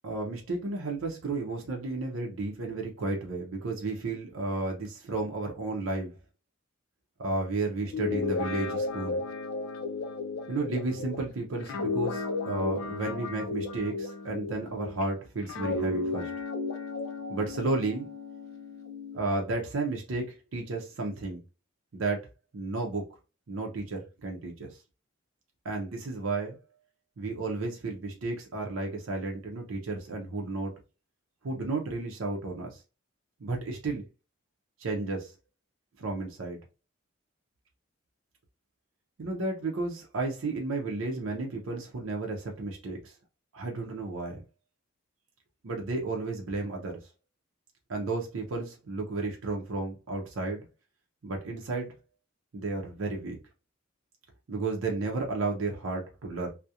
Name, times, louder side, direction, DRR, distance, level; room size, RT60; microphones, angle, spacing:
voice 1, 0.0-6.1 7.2-9.2 10.5-16.3 17.3-18.1 19.1-21.4 21.9-22.3 22.5-23.0 23.5-24.8 25.6-26.6 27.2-30.7 31.4-32.8 33.4-34.0 34.8-35.3 36.0-36.6 39.2-43.1 43.5-44.4 45.6-47.0 47.9-50.7 51.2-52.0 52.5-53.4 54.5-56.5, right 3 dB, 80° right, 0.5 m, -33 dB
Guitar, 7.8-15.0 15.5-19.2, left 3 dB, 75° left, 0.4 m, -34 dB
2.7 x 2.0 x 2.3 m
head